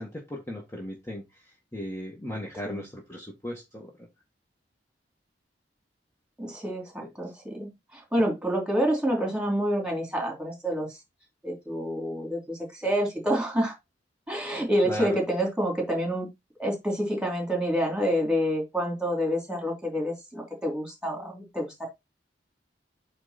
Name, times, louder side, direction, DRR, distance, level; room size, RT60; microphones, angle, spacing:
voice 1, 0.0-4.1 7.0-7.1 14.8-15.2, equal, 15° left, 1.7 m, -37 dB
voice 2, 6.4-10.9 11.4-13.7 14.3-16.3 16.6-21.9, equal, 5° right, 3.1 m, -28 dB
8.8 x 3.8 x 4.3 m
head